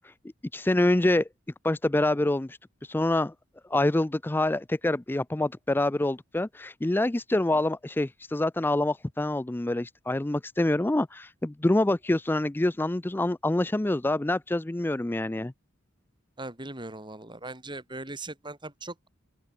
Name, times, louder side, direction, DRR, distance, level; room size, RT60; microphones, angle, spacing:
voice 1, 0.5-1.3 1.6-2.6 2.9-3.3 3.7-15.5, left 1 dB, 10° left, 0.4 m, -26 dB
voice 2, 16.4-19.1, right 2 dB, 25° right, 4.6 m, -39 dB
open air
head